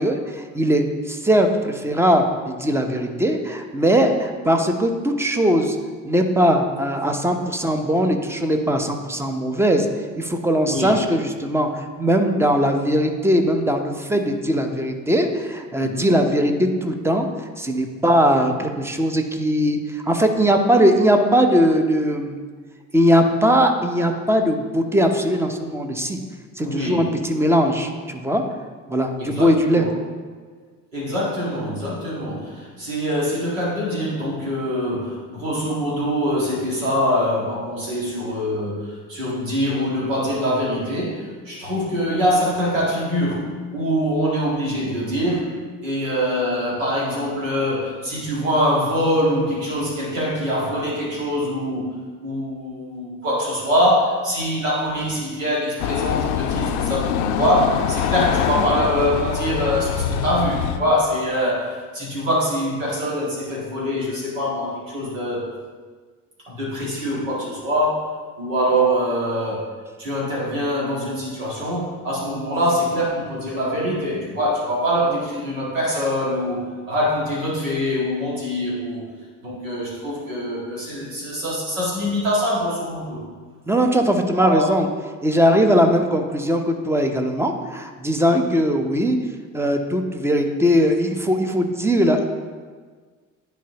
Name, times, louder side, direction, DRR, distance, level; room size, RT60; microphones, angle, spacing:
voice 1, 0.0-5.8 6.0-9.9 10.2-22.4 22.9-26.2 26.6-28.4 28.9-29.9 83.7-84.9 85.2-89.2 89.5-92.3, equal, 5° right, 5 dB, 0.7 m, -20 dB
voice 2, 10.6-11.0 15.7-16.1 26.6-27.1 29.2-29.9 30.9-45.6 45.8-51.9 52.2-65.5 66.5-68.1 68.4-69.7 70.0-79.1 79.4-83.2 84.4-84.7, equal, 80° right, -5 dB, 1.9 m, -24 dB
sound 1, 55.8-60.8, left 8 dB, 55° left, 0.5 m, -24 dB
10.0 x 4.4 x 2.9 m, 1.5 s
figure-of-eight pair, 60°, 39 cm